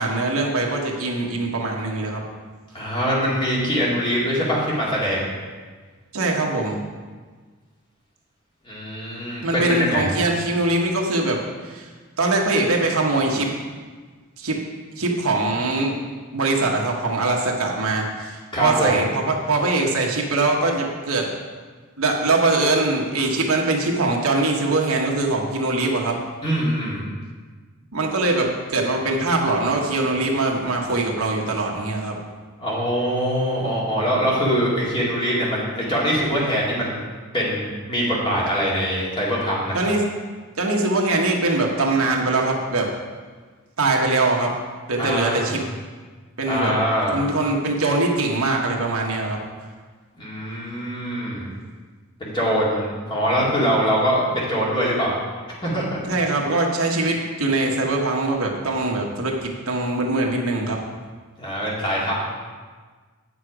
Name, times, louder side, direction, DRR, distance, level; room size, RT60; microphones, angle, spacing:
voice 1, 0.0-2.2 6.1-6.8 9.4-11.9 12.2-13.5 14.4-14.6 15.0-16.0 16.3-21.3 22.0-26.2 27.9-32.2 39.7-40.0 40.6-42.9 43.8-44.5 44.9-45.6 46.4-46.7 47.1-49.4 56.1-60.8, right 2 dB, 75° right, 0 dB, 1.3 m, -22 dB
voice 2, 2.7-5.3 8.7-10.2 18.5-19.0 26.4-27.0 32.6-37.0 37.3-39.8 45.0-45.5 46.4-47.2 50.1-51.5 52.2-55.1 55.6-56.0 61.4-62.1, equal, 20° left, -6 dB, 2.2 m, -23 dB
9.0 x 6.3 x 4.9 m, 1.4 s
head